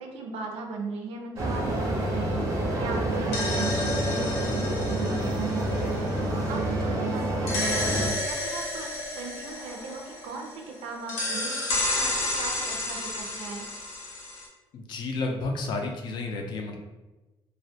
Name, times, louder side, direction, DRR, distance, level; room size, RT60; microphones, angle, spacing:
voice 1, 0.0-7.8 8.2-13.7, right 3 dB, 85° right, 1 dB, 0.4 m, -39 dB
sound 1, 1.4-8.1, right 1 dB, 30° right, 0.5 m, -28 dB
sound 2, 3.1-6.8 7.5-10.7 11.1-14.5, left 2 dB, 85° left, 0.7 m, -32 dB
voice 2, 14.7-16.8, left 3 dB, 50° left, 2 dB, 0.4 m, -31 dB
2.2 x 2.1 x 2.6 m, 1.1 s
cardioid pair, 165°, 10 cm